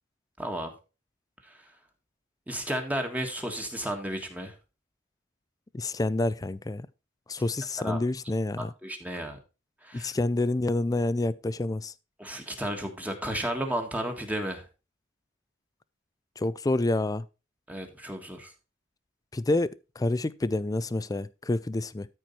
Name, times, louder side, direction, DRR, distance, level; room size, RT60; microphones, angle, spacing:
voice 1, 0.4-0.7 1.4-1.6 2.5-4.5 7.8-8.0 8.6-9.4 9.8-10.1 12.2-14.7 17.7-18.5, right 1 dB, 5° right, 1.6 m, -33 dB
voice 2, 5.7-6.9 7.3-8.7 9.9-11.9 16.4-17.2 19.3-22.1, left 2 dB, 15° left, 0.4 m, -28 dB
13.5 x 4.6 x 4.3 m
head